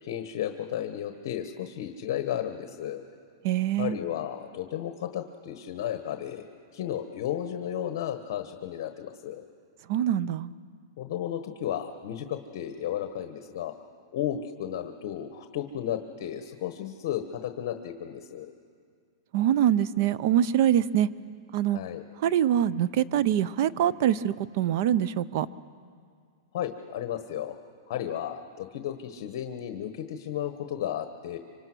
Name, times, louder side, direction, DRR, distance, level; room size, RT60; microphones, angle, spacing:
voice 1, 0.0-3.0 3.8-6.4 6.7-9.4 11.0-13.7 14.1-18.5 21.7-22.0 26.5-27.6 27.9-31.4, left 10 dB, 50° left, 7 dB, 1.3 m, -33 dB
voice 2, 3.4-4.0 9.9-10.5 19.3-21.1 21.5-21.8 22.2-25.5, right 10 dB, 45° right, 17 dB, 0.6 m, -24 dB
25.5 x 25.0 x 6.2 m, 2.1 s
supercardioid pair, 160°, 2 cm